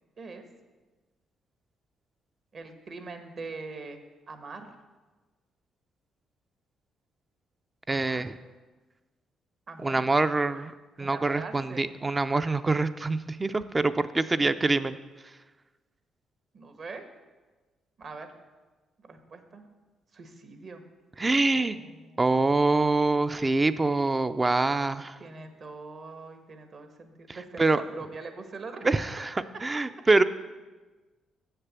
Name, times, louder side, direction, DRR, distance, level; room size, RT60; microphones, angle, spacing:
voice 1, 2.5-4.0 4.3-4.7 7.9-8.2 9.7-10.0 11.0-11.8 14.4-14.5 16.5-17.0 18.0-18.3 19.0-19.6 20.1-20.8 21.5-22.4 25.2-28.8 29.7-29.8, right 4 dB, 50° right, 6 dB, 1.2 m, -42 dB
voice 2, 7.9-8.3 9.8-10.7 11.0-15.0 21.2-21.8 22.2-25.2 27.6-27.8 28.8-29.3 29.6-30.2, right 3 dB, 25° right, 11 dB, 0.4 m, -25 dB
7.5 x 6.7 x 7.2 m, 1.3 s
cardioid pair, 90°, 0 cm